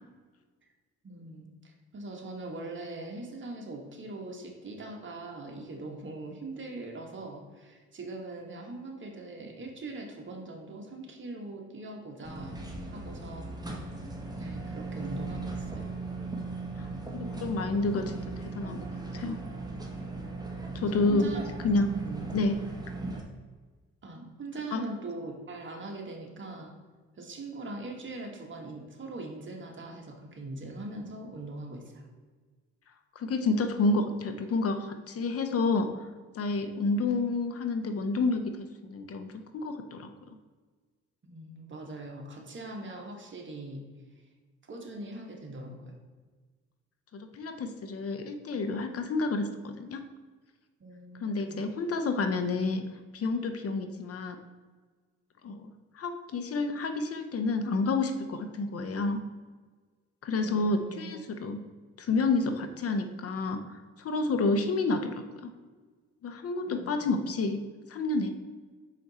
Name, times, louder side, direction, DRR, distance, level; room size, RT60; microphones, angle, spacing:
voice 1, 1.0-12.6 12.9-13.5 14.4-15.8 20.9-21.5 22.0-22.3 24.0-26.7 27.2-32.0 41.2-43.8 44.7-45.9 50.8-51.7 60.4-61.3 62.1-62.3 66.7-67.1, right 2 dB, 40° right, 1 dB, 1.5 m, -41 dB
sound 1, 12.2-23.2, right 3 dB, 15° right, 1.1 m, -38 dB
voice 2, 16.8-18.2 18.5-18.8 19.1-19.4 20.7-21.3 21.6-21.9 22.3-22.6 24.7-24.9 33.2-35.9 36.3-40.1 47.1-50.1 51.2-52.8 53.1-54.4 55.4-59.2 60.2-61.6 62.0-65.5 66.2-67.6 67.9-68.3, left 3 dB, 50° left, 8 dB, 0.7 m, -29 dB
5.9 x 4.9 x 4.1 m, 1.4 s
cardioid pair, 90°, 30 cm